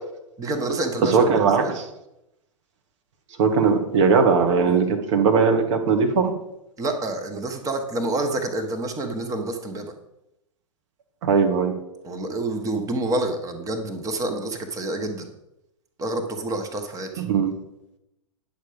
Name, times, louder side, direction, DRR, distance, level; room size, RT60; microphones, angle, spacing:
voice 1, 0.4-1.8 4.7-4.8 6.8-9.9 12.0-15.3 16.0-17.2, right 2 dB, 20° right, 5 dB, 1.4 m, -28 dB
voice 2, 1.1-1.7 3.4-6.3 11.2-11.7 17.2-17.5, right 5 dB, 60° right, 5 dB, 1.7 m, -19 dB
10.0 x 6.6 x 5.1 m, 0.86 s
hypercardioid pair, 105°, 17 cm